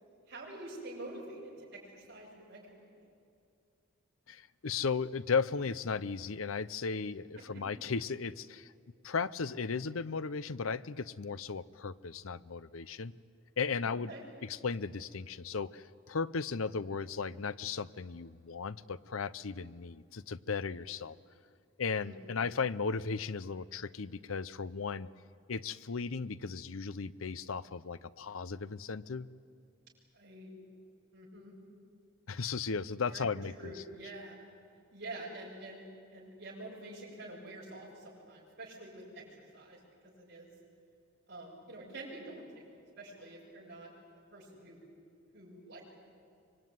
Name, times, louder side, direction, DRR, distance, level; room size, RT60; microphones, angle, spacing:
voice 1, 0.3-3.1 7.3-7.6 13.8-14.2 22.0-22.4 30.1-30.5 31.1-31.5 33.0-33.3 33.6-34.4 34.9-40.5 41.3-42.7 43.0-43.9 44.3-44.9 45.3-45.8, right 2 dB, 55° right, -7 dB, 7.5 m, -47 dB
voice 2, 4.3-8.7 9.0-13.1 13.6-14.1 14.5-21.2 21.8-25.1 25.5-29.3 32.3-33.7, left 5 dB, 75° left, 15 dB, 0.7 m, -36 dB
25.0 x 24.0 x 9.5 m, 2.4 s
head